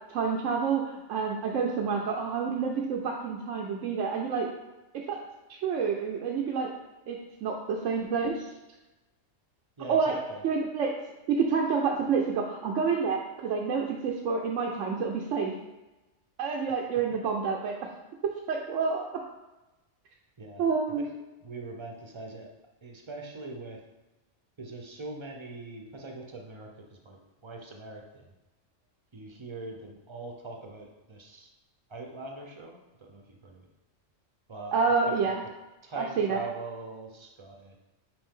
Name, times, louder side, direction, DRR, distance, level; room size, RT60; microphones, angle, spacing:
voice 1, 0.1-4.5 5.1-5.2 5.5-6.7 7.1-8.5 9.9-10.1 10.4-10.9 11.3-15.5 16.4-17.8 18.5-19.1 20.6-21.0 34.7-35.4 36.0-36.4, right 5 dB, 75° right, 0 dB, 1.0 m, -28 dB
voice 2, 9.8-10.4 20.4-20.6 21.0-21.1 21.4-22.5 22.8-23.8 24.6-28.3 29.1-31.5 31.9-33.7 34.5-34.8 35.1-35.5 35.8-37.8, right 3 dB, 30° right, 2 dB, 0.7 m, -42 dB
5.9 x 4.7 x 3.7 m, 1.1 s
omnidirectional pair, 1.3 m